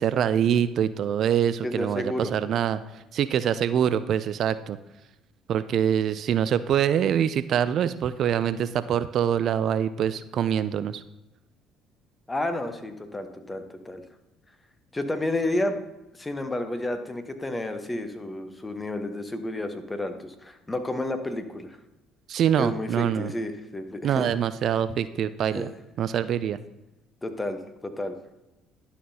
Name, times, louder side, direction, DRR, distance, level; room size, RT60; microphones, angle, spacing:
voice 1, 0.0-4.8 5.5-11.0 22.3-23.3 24.0-25.7 26.0-26.6, right 9 dB, 60° right, 14 dB, 0.3 m, -25 dB
voice 2, 1.6-2.3 12.3-14.0 14.9-15.8 16.1-21.8 22.6-24.2 25.5-25.7 27.2-28.2, left 1 dB, 15° left, 8 dB, 1.0 m, -31 dB
11.5 x 5.7 x 2.8 m, 0.97 s
hypercardioid pair, 60°, 0 cm